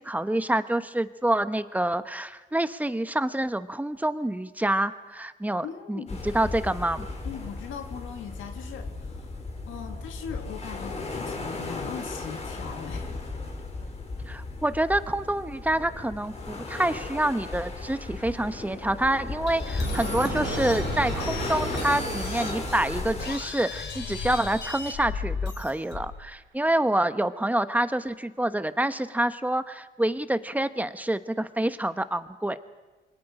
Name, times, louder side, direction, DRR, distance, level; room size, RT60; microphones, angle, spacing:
voice 1, 0.0-7.1 14.3-32.6, right 1 dB, 10° right, 11 dB, 1.1 m, -27 dB
voice 2, 5.6-6.2 7.2-13.3 13.8-13.9, left 7 dB, 80° left, 5 dB, 2.1 m, -40 dB
sound 1, 6.1-23.4, left 3 dB, 35° left, 4.2 m, -35 dB
sound 2, 19.5-26.3, left 5 dB, 60° left, 3.8 m, -35 dB
sound 3, 19.8-23.6, right 9 dB, 60° right, 1.2 m, -36 dB
28.5 x 23.0 x 5.0 m, 1.2 s
cardioid pair, 90°, 20 cm